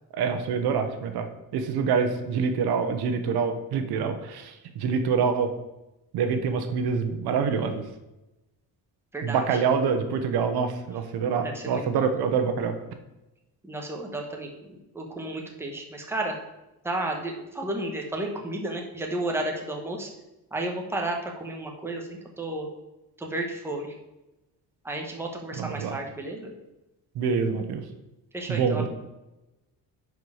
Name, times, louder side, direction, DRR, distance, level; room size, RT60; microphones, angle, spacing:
voice 1, 0.1-1.3 1.5-5.5 6.1-7.8 9.2-12.8 25.5-26.0 27.1-27.8 28.5-28.9, right 6 dB, 80° right, 7 dB, 1.1 m, -26 dB
voice 2, 9.1-9.5 11.4-12.1 13.6-16.3 16.8-20.1 20.5-22.7 23.2-23.9 24.8-26.5 28.3-28.9, right 1 dB, 5° right, 1 dB, 1.2 m, -32 dB
10.0 x 4.7 x 4.9 m, 0.97 s
cardioid pair, 165°, 38 cm